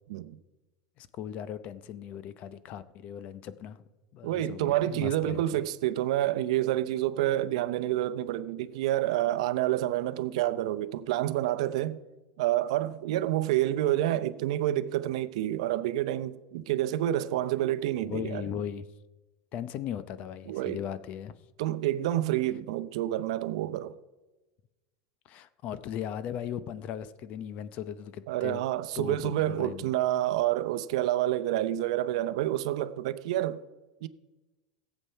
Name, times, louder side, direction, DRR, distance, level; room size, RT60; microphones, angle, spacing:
voice 1, 1.0-3.8 4.1-5.4 18.1-18.9 19.5-21.3 25.2-28.6 28.9-29.9, left 9 dB, 45° left, 0.7 m, -38 dB
voice 2, 4.2-12.0 12.4-18.4 20.5-20.8 21.6-23.9 28.3-33.6 34.0-34.1, right 13 dB, 75° right, 0.6 m, -28 dB
15.0 x 8.2 x 5.6 m
supercardioid pair, 140°, 3 cm